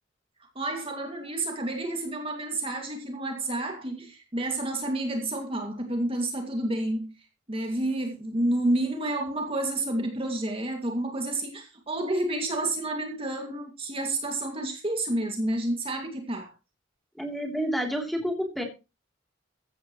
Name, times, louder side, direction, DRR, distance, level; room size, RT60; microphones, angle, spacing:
voice 1, 0.5-7.1 7.5-16.5, right 1 dB, 30° right, 2 dB, 2.3 m, -30 dB
voice 2, 17.2-18.6, equal, ahead, 2 dB, 3.3 m, -29 dB
15.0 x 12.5 x 3.1 m, 0.29 s
head